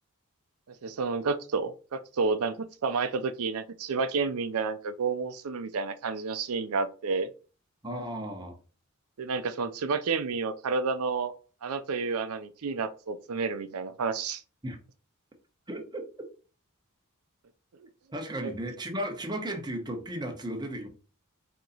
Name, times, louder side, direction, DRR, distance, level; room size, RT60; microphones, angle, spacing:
voice 1, 0.8-7.3 9.2-11.3 11.6-14.4 18.4-18.5, right 4 dB, 80° right, 0.5 m, -30 dB
voice 2, 7.8-8.6 14.6-14.8 15.7-16.1 18.1-20.9, right 1 dB, 20° right, 0.9 m, -35 dB
4.5 x 2.8 x 3.9 m
head